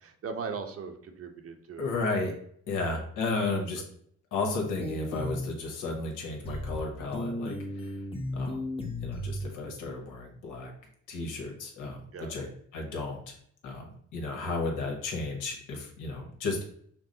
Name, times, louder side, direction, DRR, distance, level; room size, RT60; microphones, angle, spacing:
voice 1, 0.0-1.9 2.9-3.0 3.3-3.4 3.7-3.9 12.1-12.3, right 5 dB, 50° right, 6 dB, 0.8 m, -39 dB
voice 2, 1.8-2.3 2.7-3.8 4.3-7.9 8.3-8.6 9.0-10.7 11.1-13.3 13.6-16.6, left 3 dB, 90° left, 1 dB, 1.2 m, -33 dB
sound 1, 4.8-5.5 6.4-6.8 7.1-9.5, left 1 dB, 20° left, 0.9 m, -35 dB
6.0 x 2.0 x 3.9 m, 0.64 s
cardioid pair, 90°, 30 cm